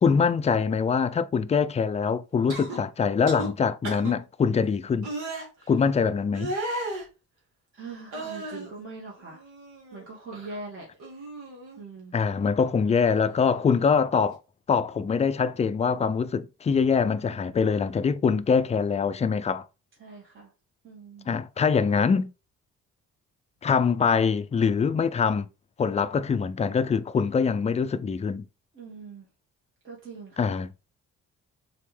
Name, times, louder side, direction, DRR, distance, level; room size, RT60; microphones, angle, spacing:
voice 1, 0.0-5.1 5.7-6.5 12.1-14.4 14.7-19.7 21.3-22.3 23.6-25.5 25.8-28.5 30.4-30.7, left 6 dB, 20° left, 0.4 m, -24 dB
sound 1, 2.5-2.8 3.3-3.5 3.8-4.1 5.0-5.5 6.3-7.1 8.1-8.7 9.2-10.0 10.3-10.6 11.0-11.8 13.1-13.2, right 2 dB, 80° right, 1.7 m, -35 dB
voice 2, 7.7-9.4 9.9-10.9 11.8-12.1 20.0-20.5 20.8-21.3 28.7-29.3 29.8-30.6, right 3 dB, 40° right, 1.6 m, -42 dB
3.8 x 3.3 x 3.2 m
cardioid pair, 90°, 30 cm